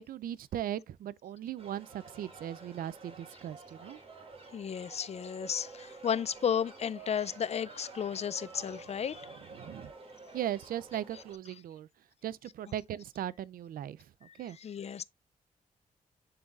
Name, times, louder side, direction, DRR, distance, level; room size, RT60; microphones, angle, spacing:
voice 1, 0.0-4.0 9.5-9.9 10.3-11.9 12.2-14.0 14.4-14.6, right 11 dB, 80° right, 0.4 m, -38 dB
sound 1, 1.6-11.4, right 3 dB, 40° right, 2.2 m, -50 dB
voice 2, 4.5-9.3 14.3-15.0, left 8 dB, 45° left, 0.4 m, -33 dB
11.0 x 3.9 x 2.3 m
cardioid pair, 80°, 15 cm